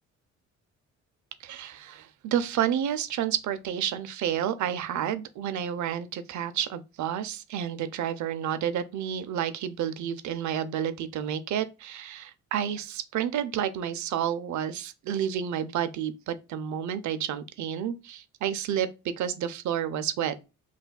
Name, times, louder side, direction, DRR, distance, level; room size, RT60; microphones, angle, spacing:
voice 1, 1.4-20.3, right 9 dB, 70° right, 0.6 m, -30 dB
5.6 x 2.6 x 2.3 m
cardioid pair, 90°, 30 cm